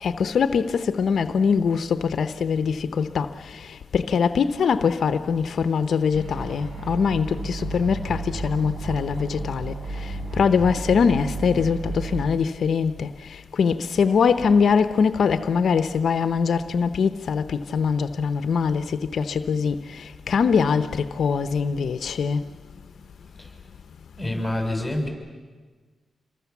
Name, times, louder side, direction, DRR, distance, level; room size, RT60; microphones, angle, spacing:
voice 1, 0.0-3.3 3.9-9.7 10.4-13.1 13.6-19.8 20.3-22.4, left 6 dB, 70° left, 0.8 m, -22 dB
sound 1, 6.1-12.2, right 2 dB, 65° right, 5.7 m, -33 dB
voice 2, 24.2-25.1, left 1 dB, ahead, 6.9 m, -26 dB
27.0 x 23.0 x 7.2 m
cardioid pair, 80°, 0 cm